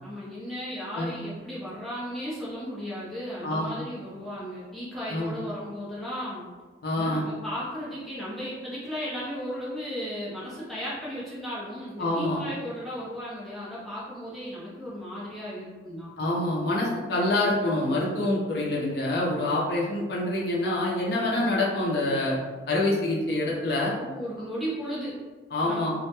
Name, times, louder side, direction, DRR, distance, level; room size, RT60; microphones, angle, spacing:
voice 1, 0.0-6.4 6.9-16.1 23.9-25.2 25.6-25.8, equal, ahead, -9 dB, 0.6 m, -35 dB
voice 2, 3.4-3.7 5.1-5.3 6.8-7.2 12.0-12.4 16.2-22.4 22.7-23.9 25.5-25.9, left 1 dB, 55° left, -5 dB, 0.5 m, -26 dB
2.1 x 2.1 x 2.9 m, 1.3 s
head